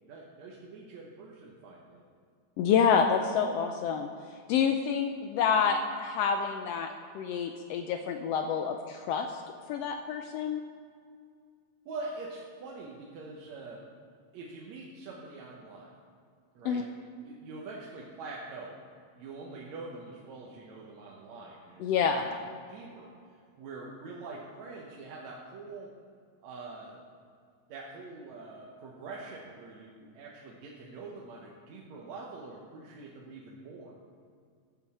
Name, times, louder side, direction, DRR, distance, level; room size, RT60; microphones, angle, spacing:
voice 1, 0.0-2.0 11.9-13.8 14.3-15.9 16.6-16.9 17.2-18.8 19.1-22.2 22.7-23.1 23.6-25.9 26.4-27.0 27.7-33.9, right 3 dB, 70° right, -3 dB, 2.2 m, -44 dB
voice 2, 2.6-4.1 4.5-9.4 9.7-10.6 16.6-16.8 21.8-22.2, left 6 dB, 85° left, 5 dB, 1.4 m, -28 dB
14.5 x 8.0 x 4.2 m, 2.2 s
omnidirectional pair, 3.4 m